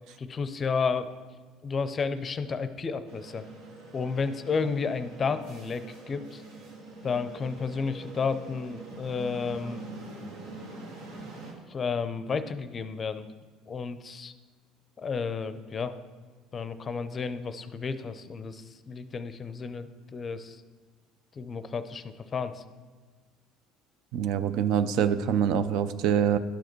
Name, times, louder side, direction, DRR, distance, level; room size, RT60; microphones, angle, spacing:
voice 1, 0.2-1.1 1.6-3.4 3.9-6.4 7.0-9.8 11.7-13.3 13.7-14.3 15.0-16.0 16.5-20.6 21.4-22.6, left 5 dB, 35° left, 12 dB, 0.5 m, -32 dB
sound 1, 3.1-11.5, right 2 dB, 85° right, 1.4 m, -44 dB
voice 2, 24.1-26.4, right 8 dB, 70° right, 12 dB, 0.4 m, -25 dB
11.5 x 4.8 x 3.1 m, 1.5 s
supercardioid pair, 80°, 0 cm